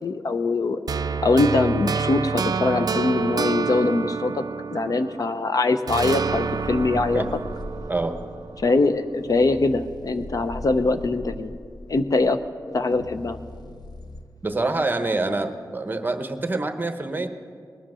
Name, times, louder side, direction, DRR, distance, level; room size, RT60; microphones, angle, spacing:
voice 1, 0.0-0.8 1.2-4.4 4.7-7.2 8.6-11.5 11.9-12.4 12.7-13.4, left 3 dB, 55° left, 10 dB, 0.6 m, -22 dB
sound 1, 0.9-5.4 5.9-9.0, right 5 dB, 60° right, 0.4 m, -28 dB
sound 2, 6.0-14.2, left 1 dB, 70° left, 1.1 m, -40 dB
voice 2, 6.8-7.3 7.9-8.2 14.4-17.3, right 2 dB, 25° right, 8 dB, 0.9 m, -26 dB
20.0 x 10.5 x 6.2 m, 2.2 s
wide cardioid pair, 115°, 7 cm